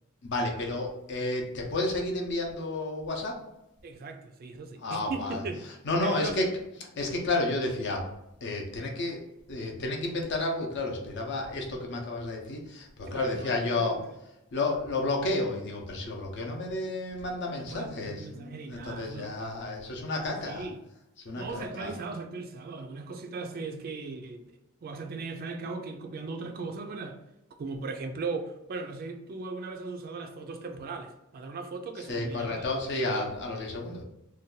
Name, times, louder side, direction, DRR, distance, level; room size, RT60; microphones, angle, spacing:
voice 1, 0.2-3.4 4.8-5.4 5.8-6.5 7.0-8.0 8.4-9.2 9.5-13.9 14.5-20.7 21.2-21.9 32.1-34.0, left 2 dB, 50° left, 0 dB, 0.6 m, -31 dB
voice 2, 3.8-5.7 6.0-6.4 13.1-14.0 17.6-19.4 20.2-20.8 21.4-27.2 27.6-32.7, right 4 dB, 40° right, 6 dB, 0.3 m, -38 dB
2.6 x 2.2 x 3.8 m, 0.87 s
head